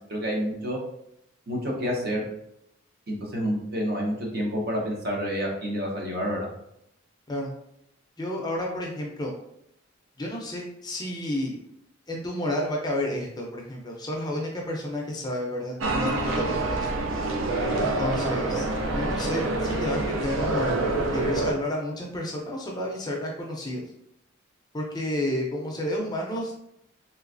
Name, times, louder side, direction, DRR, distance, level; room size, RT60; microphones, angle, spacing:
voice 1, 0.1-0.8 1.5-2.3 3.1-6.5, equal, 50° right, -1 dB, 0.8 m, -28 dB
voice 2, 8.2-9.3 10.2-11.6 12.1-16.9 17.8-23.8 24.7-26.6, left 1 dB, 20° left, -1 dB, 0.5 m, -31 dB
sound 1, 15.8-21.5, right 2 dB, 75° right, 0.5 m, -26 dB
3.3 x 3.0 x 2.5 m, 0.76 s
head